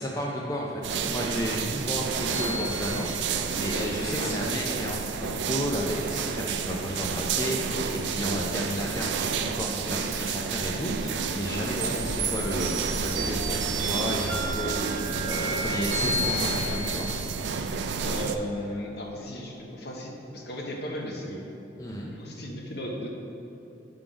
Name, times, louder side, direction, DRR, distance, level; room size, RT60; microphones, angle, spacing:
voice 1, 0.0-17.1 21.8-22.1, equal, 20° left, -3 dB, 0.5 m, -33 dB
sound 1, 0.8-18.4, right 5 dB, 70° right, 0.3 m, -30 dB
sound 2, 2.3-3.8 11.8-17.5, right 1 dB, 85° right, 0.9 m, -33 dB
voice 2, 11.8-12.4 18.0-21.5 22.1-23.1, equal, 60° left, 0 dB, 0.8 m, -36 dB
7.3 x 3.8 x 4.9 m, 2.8 s
head